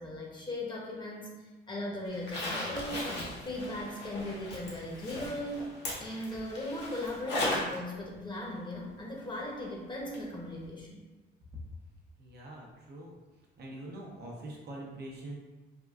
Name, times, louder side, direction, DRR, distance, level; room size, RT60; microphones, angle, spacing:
voice 1, 0.0-3.1 3.4-5.7 6.0-11.0, left 1 dB, 25° left, -3 dB, 0.8 m, -38 dB
Zipper (clothing), 2.1-7.8 8.1-8.2 10.1-10.2 10.6-10.7, left 1 dB, 60° left, 1.0 m, -37 dB
voice 2, 12.2-13.1 13.6-15.3, right 1 dB, 55° right, -2 dB, 0.7 m, -44 dB
3.5 x 2.3 x 2.4 m, 1.2 s
cardioid pair, 90°, 20 cm